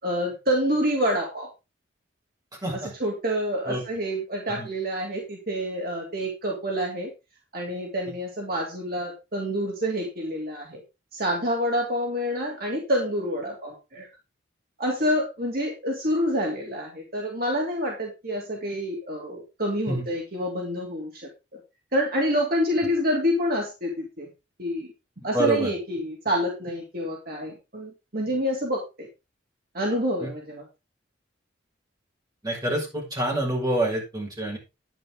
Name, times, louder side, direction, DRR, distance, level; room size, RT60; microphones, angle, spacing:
voice 1, 0.0-1.5 2.7-7.1 7.5-10.8 11.1-14.1 14.8-21.6 21.9-24.3 24.6-24.9 25.2-29.1 29.7-30.6, equal, 50° right, 0 dB, 3.0 m, -27 dB
voice 2, 25.3-25.7 30.2-30.3 32.4-34.6, right 1 dB, 20° right, -2 dB, 6.3 m, -27 dB
11.0 x 10.0 x 3.8 m, 0.26 s
head